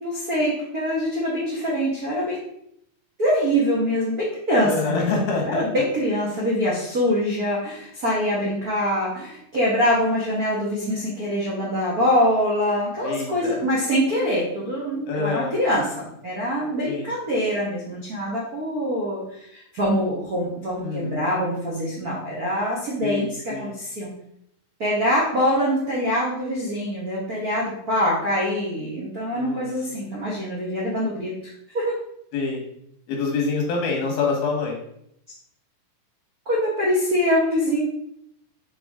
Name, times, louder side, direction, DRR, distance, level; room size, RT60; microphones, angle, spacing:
voice 1, 0.0-2.4 3.2-5.1 5.4-24.1 24.8-31.3 31.7-32.0 36.4-37.8, equal, 75° right, -5 dB, 0.8 m, -24 dB
voice 2, 4.6-5.8 13.0-13.6 15.1-15.6 16.8-17.1 20.8-21.3 23.0-23.7 29.3-29.9 32.3-32.6 33.1-34.8, left 4 dB, 90° left, 0 dB, 3.4 m, -26 dB
6.9 x 4.2 x 3.6 m, 0.73 s
omnidirectional pair, 4.1 m